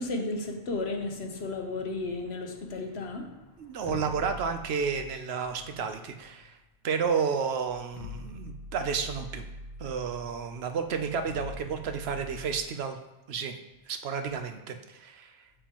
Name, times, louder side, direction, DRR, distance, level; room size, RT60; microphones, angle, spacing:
voice 1, 0.0-3.3, left 2 dB, 80° left, 3 dB, 1.2 m, -33 dB
voice 2, 3.6-6.6 6.8-9.5 9.8-13.0 13.3-13.5 13.9-15.4, right 6 dB, 80° right, 7 dB, 0.9 m, -31 dB
sound 1, 3.7-6.5 7.2-7.3 7.7-12.6, left 1 dB, 60° left, 0.8 m, -44 dB
7.0 x 6.6 x 2.9 m, 1.0 s
omnidirectional pair, 1.1 m